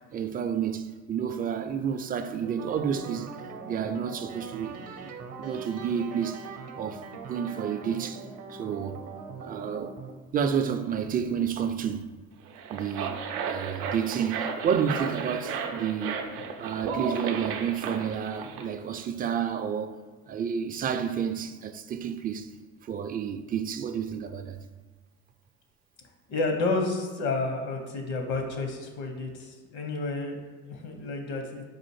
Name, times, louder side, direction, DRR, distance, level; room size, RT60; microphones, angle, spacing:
voice 1, 0.1-3.3 3.7-6.5 6.8-9.0 9.4-9.9 10.3-12.1 12.7-13.2 13.4-16.3 16.6-20.0 20.3-22.5 22.8-24.6, right 7 dB, 30° right, 0.4 m, -30 dB
sound 1, 2.4-10.1, right 5 dB, 55° right, 0.7 m, -41 dB
sound 2, 12.5-18.7, right 6 dB, 90° right, 0.5 m, -34 dB
voice 2, 26.3-31.6, left 3 dB, 65° left, 0.9 m, -31 dB
4.2 x 2.5 x 4.6 m
supercardioid pair, 90°, 30 cm